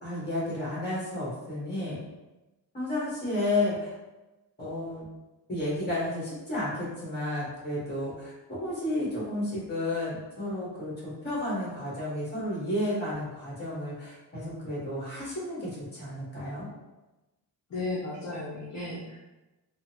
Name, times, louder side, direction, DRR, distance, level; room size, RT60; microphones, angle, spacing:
voice 1, 0.0-2.0 2.7-3.9 4.6-5.0 5.5-10.9 11.2-16.7, left 1 dB, 25° left, -7 dB, 1.4 m, -32 dB
voice 2, 17.7-19.2, left 2 dB, 45° left, -7 dB, 0.7 m, -34 dB
3.7 x 2.0 x 2.8 m, 1.1 s
wide cardioid pair, 150°, 40 cm